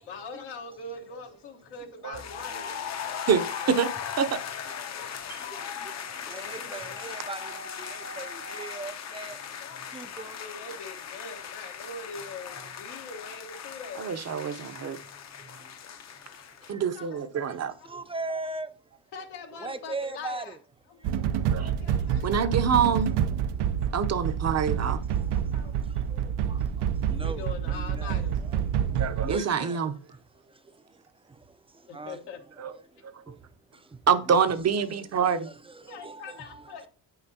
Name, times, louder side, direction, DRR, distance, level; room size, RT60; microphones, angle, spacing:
voice 1, 0.0-2.7 3.4-3.8 4.1-4.6 4.9-6.9 7.2-7.3 9.6-9.8 10.1-14.1 16.3-16.5 16.9-18.0 19.1-20.6 20.9-22.3 25.3-25.7 27.2-28.4 29.4-29.5 29.9-30.0 31.9-32.4 35.8-36.9, left 4 dB, 80° left, 1.3 m, -43 dB
sound 1, 2.1-16.7, left 8 dB, 40° left, 0.6 m, -38 dB
voice 2, 3.3-3.9 4.2-4.3 5.3-5.4 14.0-15.0 16.7-17.7 21.5-21.7 22.2-23.1 23.9-25.0 29.0-30.0 32.6-32.7 33.1-33.3 34.1-35.5, right 6 dB, 40° right, 0.7 m, -26 dB
voice 3, 6.3-7.5 7.8-9.4 9.9-10.3 17.9-18.7 19.6-20.5 27.1-27.4 27.7-28.2 29.2-29.8 31.9-32.2 34.3-34.6 35.5-35.6 36.0-36.6, right 3 dB, 15° right, 0.4 m, -38 dB
sound 2, 21.0-29.4, right 9 dB, 80° right, 0.5 m, -28 dB
8.6 x 5.9 x 2.7 m
cardioid pair, 95°, 40 cm